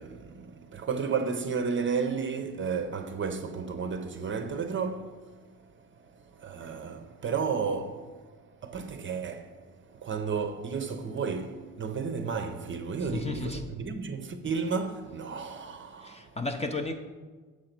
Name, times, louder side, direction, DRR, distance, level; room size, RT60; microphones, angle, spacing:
voice 1, 0.0-5.2 6.4-8.2 8.6-9.6 9.9-16.3, right 5 dB, 30° right, 0.6 m, -32 dB
voice 2, 13.0-13.7 16.0-16.9, left 3 dB, 15° left, 0.6 m, -33 dB
7.3 x 3.9 x 5.9 m
cardioid pair, 100°, 38 cm